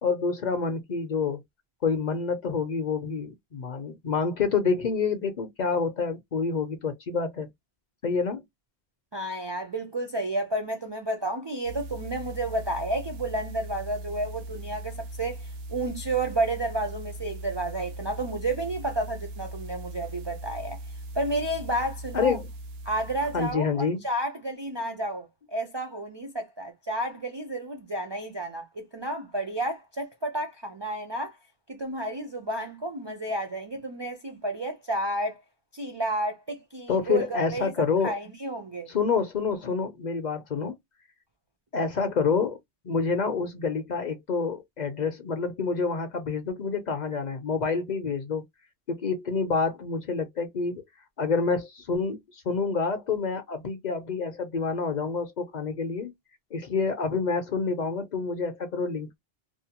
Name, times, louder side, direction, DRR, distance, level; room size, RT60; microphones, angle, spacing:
voice 1, 0.0-1.4 1.8-7.5 8.0-8.4 22.1-22.4 23.3-24.0 36.9-38.1 38.9-40.7 41.7-42.6 42.8-48.4 48.9-50.8 51.2-56.1 56.5-59.2, left 5 dB, 50° left, 0.7 m, -28 dB
voice 2, 9.1-20.8 21.1-22.4 22.9-31.4 31.7-35.4 35.7-38.9, right 1 dB, 40° right, 0.4 m, -31 dB
sound 1, 11.6-23.5, right 1 dB, 75° right, 0.8 m, -39 dB
2.6 x 2.0 x 2.8 m
omnidirectional pair, 1.0 m